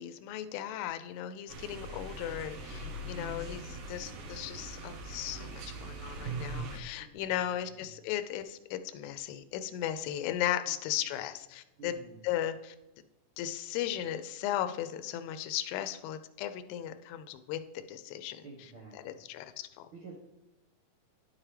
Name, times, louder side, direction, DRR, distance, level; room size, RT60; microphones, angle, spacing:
voice 1, 0.0-12.0 12.2-12.8 13.4-17.6 17.9-19.9, left 11 dB, 85° left, 10 dB, 2.3 m, -36 dB
sound 1, 1.5-6.8, right 2 dB, 90° right, 1.4 m, -41 dB
voice 2, 2.8-3.5 7.0-7.4 10.9-11.1 11.8-12.2 18.4-19.2 19.9-20.2, right 4 dB, 70° right, -5 dB, 1.2 m, -51 dB
10.5 x 6.1 x 3.2 m, 0.98 s
omnidirectional pair, 4.2 m